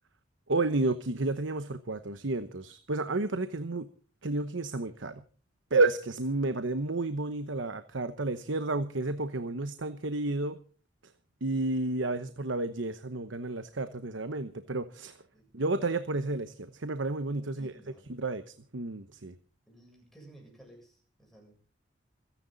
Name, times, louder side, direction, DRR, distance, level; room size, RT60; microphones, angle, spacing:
voice 1, 0.5-3.9 4.2-5.2 5.7-10.6 11.4-15.2 15.5-17.7 18.2-19.3, right 2 dB, 80° right, 11 dB, 1.0 m, -31 dB
voice 2, 17.4-18.0 19.7-21.7, right 1 dB, ahead, 0 dB, 7.8 m, -56 dB
27.5 x 10.5 x 4.0 m, 0.40 s
head